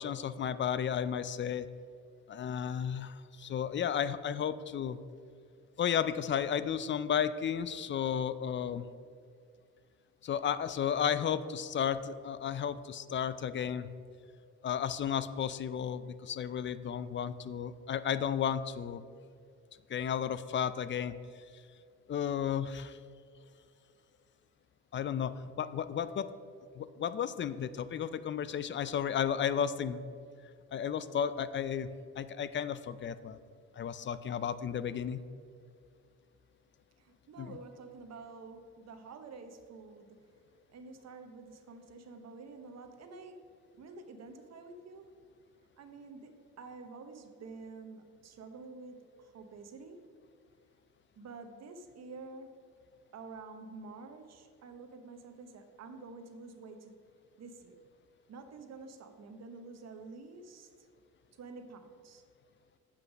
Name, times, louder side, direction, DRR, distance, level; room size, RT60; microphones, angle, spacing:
voice 1, 0.0-1.7 2.3-5.0 5.8-8.9 10.2-13.9 14.6-19.0 19.9-21.1 22.1-23.0 24.9-26.3 26.8-30.0 30.7-31.9 32.2-33.4 33.8-35.2 37.4-37.6, left 8 dB, 40° left, 14 dB, 0.4 m, -33 dB
voice 2, 37.0-40.2 40.7-43.4 43.8-45.1 45.8-50.1 51.2-52.6 53.1-57.0 57.4-57.8 58.3-60.9 61.3-62.2, right 4 dB, 60° right, 7 dB, 1.0 m, -49 dB
7.9 x 5.7 x 5.1 m, 2.2 s
cardioid pair, 90°, 30 cm